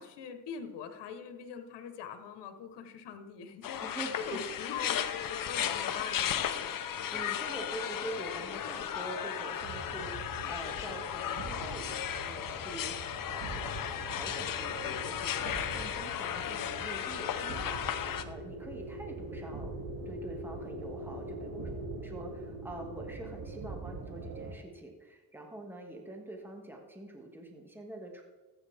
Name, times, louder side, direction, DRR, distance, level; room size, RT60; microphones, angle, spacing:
voice 1, 0.0-3.8 4.2-6.4, left 7 dB, 80° left, 7 dB, 1.5 m, -43 dB
sound 1, 3.6-18.2, left 10 dB, 55° left, 0.9 m, -35 dB
voice 2, 3.8-4.5 6.9-13.6 14.1-19.8 20.1-21.7 22.0-28.2, right 1 dB, 5° right, 1 dB, 2.2 m, -45 dB
sound 2, 9.6-24.5, right 2 dB, 60° right, 3.3 m, -43 dB
sound 3, 10.5-16.3, right 3 dB, 80° right, 2.5 m, -59 dB
14.5 x 9.0 x 3.6 m, 1.2 s
cardioid pair, 85°, 40 cm